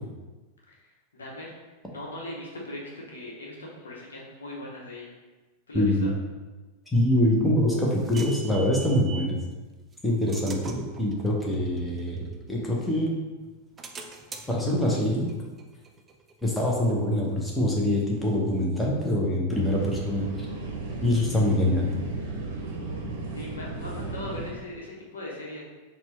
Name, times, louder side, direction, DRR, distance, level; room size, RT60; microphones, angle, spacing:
voice 1, 0.7-1.5 1.9-5.2 5.7-6.1 23.4-25.6, left 1 dB, 70° left, -3 dB, 0.9 m, -39 dB
voice 2, 5.7-6.1 6.9-9.4 10.0-12.2 12.5-13.1 14.5-15.3 16.4-20.5 21.0-21.9, left 1 dB, 5° left, -4 dB, 0.8 m, -24 dB
sound 1, 7.2-9.4 9.9-13.0 13.4-16.9, right 4 dB, 20° right, 0.4 m, -44 dB
sound 2, 19.5-24.5, right 3 dB, 50° right, 0.7 m, -35 dB
4.3 x 2.2 x 4.1 m, 1.2 s
figure-of-eight pair, 90°, 0 cm